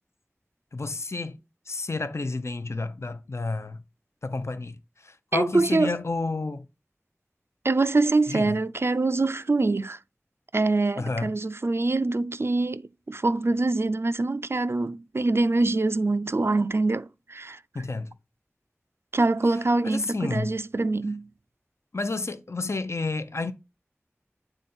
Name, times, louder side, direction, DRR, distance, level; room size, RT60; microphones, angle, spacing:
voice 1, 0.7-1.4 1.7-3.8 4.2-4.8 5.0-6.7 8.3-8.5 11.0-11.3 17.7-18.1 19.8-20.5 21.9-23.5, left 3 dB, 65° left, 0.5 m, -30 dB
voice 2, 5.3-6.0 7.6-10.0 10.5-17.6 19.1-21.3, right 2 dB, 55° right, 0.4 m, -24 dB
7.9 x 3.7 x 4.2 m
wide cardioid pair, 40°, 5 cm